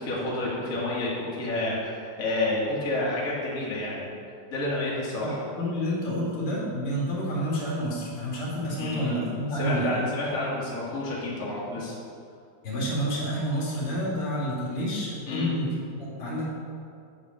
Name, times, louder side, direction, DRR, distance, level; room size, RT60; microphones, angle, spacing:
voice 1, 0.0-4.1 4.5-5.5 8.7-9.3 9.5-12.0 15.3-15.5, left 2 dB, 85° left, -6 dB, 0.7 m, -29 dB
voice 2, 5.2-9.9 12.6-16.4, equal, 45° left, -6 dB, 2.1 m, -29 dB
8.7 x 4.9 x 6.4 m, 2.4 s
omnidirectional pair, 4.7 m